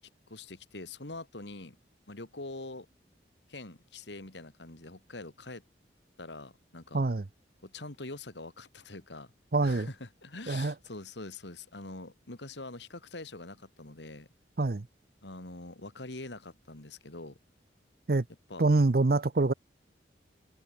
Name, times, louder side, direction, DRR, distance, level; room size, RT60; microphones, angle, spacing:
voice 1, 0.3-1.8 2.1-2.9 3.5-5.6 6.2-7.0 7.6-9.3 9.6-14.3 15.2-17.4 18.5-18.7, left 2 dB, 80° left, 2.7 m, -44 dB
voice 2, 6.9-7.2 9.5-9.9 10.5-10.7 14.6-14.9 18.1-18.2 18.6-19.5, right 3 dB, 55° right, 0.7 m, -25 dB
head